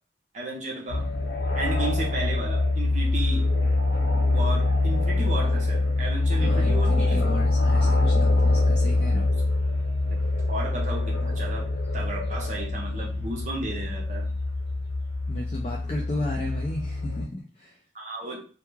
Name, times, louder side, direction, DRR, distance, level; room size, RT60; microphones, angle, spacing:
voice 1, 0.3-1.1 1.6-3.4 4.3-7.2 9.3-9.4 10.5-11.7 11.9-14.3 16.1-16.2 17.9-18.5, right 2 dB, 45° right, -2 dB, 0.7 m, -34 dB
sound 1, 0.9-17.2, left 2 dB, 85° left, 0.8 m, -24 dB
voice 2, 6.3-9.3 15.3-17.8, left 1 dB, 35° left, -1 dB, 0.4 m, -34 dB
2.3 x 2.3 x 3.1 m, 0.38 s
head